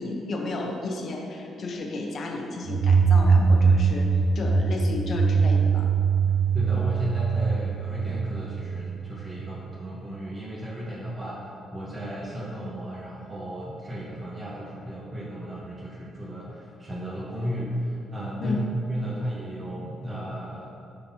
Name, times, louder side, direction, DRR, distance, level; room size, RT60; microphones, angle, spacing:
voice 1, 0.0-5.9 18.4-18.7, left 2 dB, 55° left, 2 dB, 0.8 m, -32 dB
sound 1, 2.7-9.2, right 5 dB, 80° right, 0.8 m, -22 dB
voice 2, 6.5-11.4 11.7-18.6 18.9-20.8, equal, 25° right, -6 dB, 1.1 m, -34 dB
9.9 x 4.1 x 2.8 m, 2.5 s
cardioid pair, 90°, 0 cm